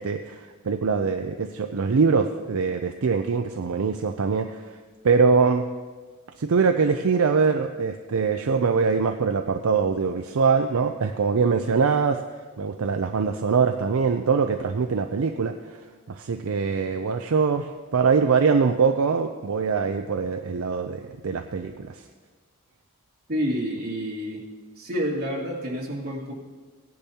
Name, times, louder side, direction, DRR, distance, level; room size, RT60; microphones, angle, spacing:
voice 1, 0.0-4.6 5.0-5.7 6.4-12.2 12.6-15.5 16.1-22.0, right 5 dB, 70° right, 6 dB, 0.5 m, -23 dB
voice 2, 23.3-24.4 24.8-26.3, equal, 45° right, -4 dB, 2.6 m, -28 dB
16.5 x 10.5 x 2.8 m, 1.4 s
head